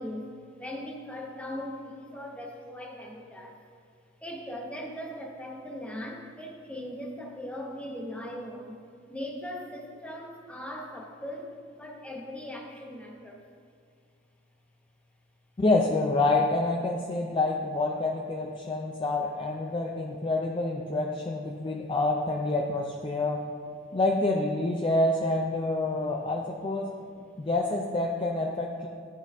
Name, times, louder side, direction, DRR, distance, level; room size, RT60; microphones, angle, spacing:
voice 1, 0.0-3.6 4.2-8.8 9.1-13.4 21.6-21.8, left 1 dB, 5° left, 0 dB, 0.8 m, -39 dB
voice 2, 15.6-23.4 23.9-26.9 27.4-28.9, left 2 dB, 25° left, 0 dB, 0.4 m, -27 dB
11.5 x 3.9 x 3.5 m, 2.2 s
head